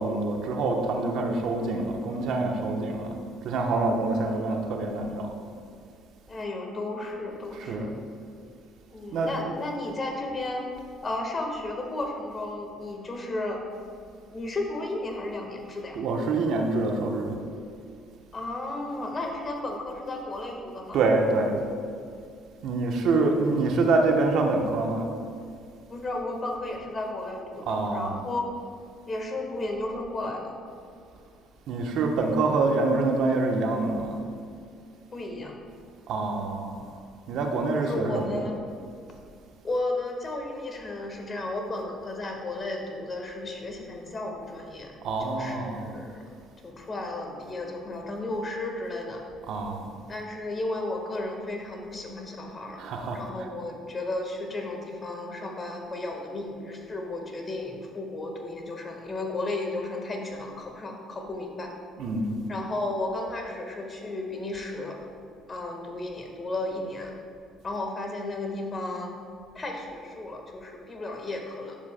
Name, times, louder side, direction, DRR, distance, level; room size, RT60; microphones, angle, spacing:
voice 1, 0.0-3.2 3.4-5.3 7.5-8.0 9.1-9.6 15.9-17.4 20.9-21.6 22.6-25.1 27.7-28.2 31.7-34.2 36.1-36.9 37.3-38.5 45.0-46.0 49.5-49.9 52.8-53.5 62.0-62.5, right 3 dB, 65° right, 3 dB, 0.9 m, -26 dB
voice 2, 4.2-4.9 6.3-7.9 8.9-10.6 11.0-13.6 14.3-16.0 18.3-21.0 25.9-28.4 29.1-30.5 35.1-35.5 37.7-38.5 39.6-44.9 45.2-46.2 46.6-49.2 50.1-52.8 53.1-61.7 62.5-65.0 65.5-67.1 67.6-69.1 69.5-71.8, left 2 dB, 35° left, 2 dB, 1.4 m, -33 dB
10.5 x 7.1 x 2.2 m, 2.3 s
hypercardioid pair, 65°, 0 cm